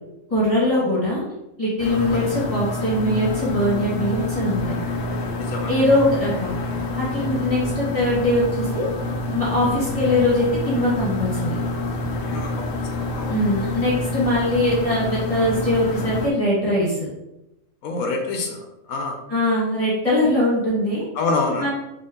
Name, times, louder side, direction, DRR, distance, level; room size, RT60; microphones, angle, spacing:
voice 1, 0.3-1.2 1.6-4.7 5.7-6.5 7.0-8.8 9.3-11.6 13.3-17.1 19.3-21.1 21.6-21.7, left 1 dB, 25° left, -9 dB, 1.7 m, -21 dB
sound 1, 1.8-16.3, left 2 dB, 60° left, 0.6 m, -27 dB
voice 2, 1.9-2.3 5.4-5.7 12.3-12.8 13.1-13.3 17.8-18.6 18.9-19.2 21.2-21.7, left 3 dB, 90° left, 3 dB, 1.1 m, -26 dB
4.3 x 2.9 x 3.7 m, 0.91 s
omnidirectional pair, 1.4 m